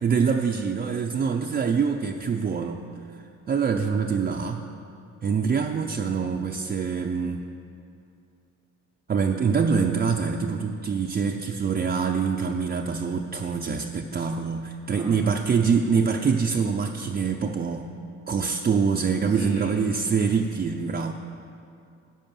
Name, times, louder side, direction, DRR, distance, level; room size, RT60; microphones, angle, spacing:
voice 1, 0.0-2.8 3.5-4.6 5.2-7.5 9.1-17.9 18.3-21.1, right 5 dB, 30° right, 2 dB, 0.5 m, -25 dB
voice 2, 14.9-15.6 19.3-19.8, left 1 dB, 50° left, -4 dB, 2.7 m, -41 dB
11.0 x 5.0 x 7.3 m, 2.5 s
cardioid pair, 90°, 30 cm